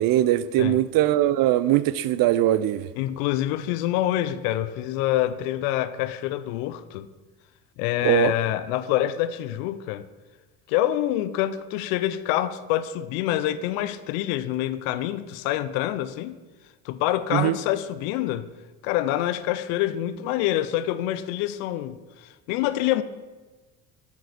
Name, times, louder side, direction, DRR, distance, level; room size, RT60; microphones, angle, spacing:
voice 1, 0.0-2.9 8.0-8.3 17.3-17.6, right 13 dB, 55° right, 0.5 m, -21 dB
voice 2, 3.0-7.1 7.8-10.1 10.7-16.3 16.8-18.5 18.8-23.0, left 13 dB, 75° left, 0.6 m, -26 dB
7.6 x 7.3 x 4.1 m
supercardioid pair, 80°, 40 cm